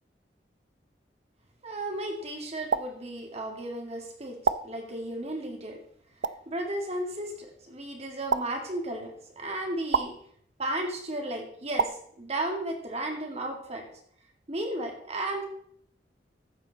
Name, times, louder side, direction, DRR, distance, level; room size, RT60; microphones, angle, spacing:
voice 1, 1.6-4.4 4.6-5.8 6.5-10.2 10.6-13.9 14.5-15.4, right 1 dB, 35° right, 2 dB, 2.2 m, -34 dB
sound 1, 2.7-2.9 4.4-4.6 6.2-6.4 8.3-8.4 9.9-10.1 11.8-11.9, right 6 dB, 85° right, 0.5 m, -25 dB
14.0 x 7.5 x 4.1 m, 0.64 s
head